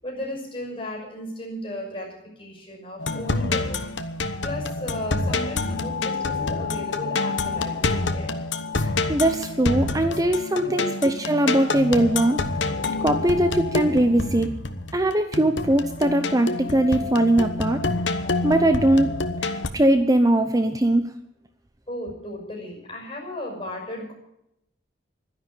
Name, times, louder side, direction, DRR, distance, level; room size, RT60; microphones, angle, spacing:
voice 1, 0.0-3.8 4.4-8.3 10.5-11.1 21.9-24.1, left 1 dB, 30° left, -1 dB, 5.9 m, -35 dB
sound 1, 3.0-19.7, left 3 dB, 75° left, 1.2 m, -27 dB
voice 2, 9.1-12.4 13.0-14.5 14.9-17.8 18.4-19.1 19.4-21.0, right 1 dB, 20° right, 8 dB, 0.7 m, -20 dB
12.0 x 10.5 x 9.9 m, 0.82 s
head